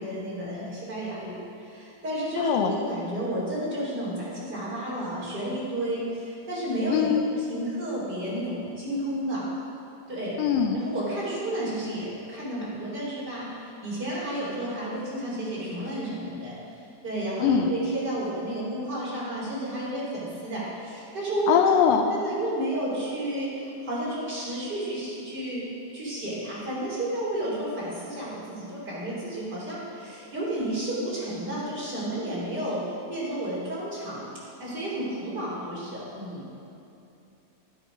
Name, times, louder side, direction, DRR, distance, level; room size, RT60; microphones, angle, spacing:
voice 1, 0.0-9.4 10.1-10.4 10.7-16.5 17.0-21.5 22.1-25.6 25.9-34.3 34.6-36.4, right 1 dB, 30° right, -7 dB, 3.3 m, -32 dB
voice 2, 2.4-2.7 6.9-7.3 10.4-10.8 17.4-17.7 21.5-22.1, left 7 dB, 85° left, 5 dB, 2.3 m, -22 dB
11.0 x 10.5 x 5.0 m, 2.8 s
omnidirectional pair, 4.0 m